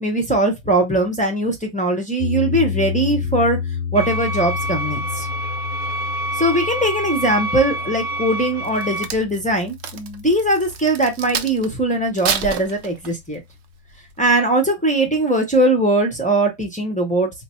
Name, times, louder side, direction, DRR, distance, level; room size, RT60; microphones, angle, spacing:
voice 1, 0.0-3.6 3.9-5.3 6.4-13.4 14.2-17.3, right 1 dB, 10° left, 0.4 m, -20 dB
sound 1, 2.2-12.4, left 7 dB, 65° left, 0.9 m, -30 dB
sound 2, 4.0-9.0, right 1 dB, 45° right, 1.1 m, -27 dB
Crack, 8.6-11.7 12.1-13.4 13.9-14.1, right 7 dB, 70° right, 0.6 m, -28 dB
3.3 x 2.1 x 4.1 m
omnidirectional pair, 1.7 m